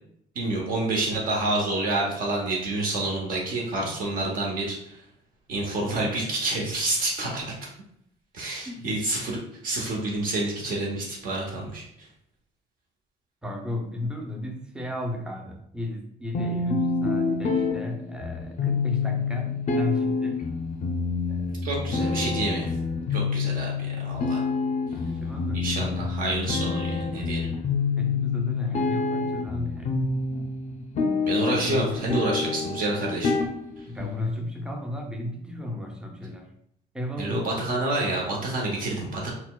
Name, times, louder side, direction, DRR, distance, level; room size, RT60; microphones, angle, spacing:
voice 1, 0.3-5.0 5.5-7.5 8.3-12.1 21.6-22.7 23.1-24.4 25.5-27.5 31.2-33.3 33.8-33.9 37.2-39.3, right 2 dB, 55° right, -2 dB, 0.7 m, -28 dB
voice 2, 8.6-9.0 13.4-20.4 21.3-22.0 24.9-26.1 28.0-30.1 33.8-36.5 36.9-37.5, left 1 dB, 5° right, 2 dB, 0.5 m, -34 dB
sound 1, 16.3-34.3, left 4 dB, 45° left, 0.5 m, -27 dB
4.1 x 2.1 x 2.3 m, 0.74 s
cardioid pair, 110°, 17 cm